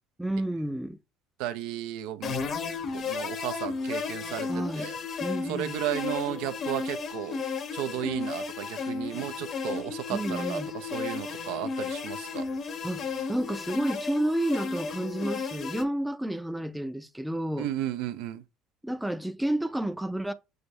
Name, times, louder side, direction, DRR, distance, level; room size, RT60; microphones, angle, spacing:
voice 1, 0.2-1.0 4.5-4.9 5.2-5.8 10.1-10.7 12.8-17.7 18.8-20.3, right 1 dB, 5° right, 0.4 m, -31 dB
voice 2, 1.4-2.3 2.9-5.0 5.5-7.4 7.7-12.5 17.6-18.4, right 12 dB, 80° right, 0.5 m, -34 dB
sound 1, 2.2-15.8, left 5 dB, 45° left, 0.9 m, -34 dB
6.3 x 2.6 x 3.1 m
cardioid pair, 120°, 0 cm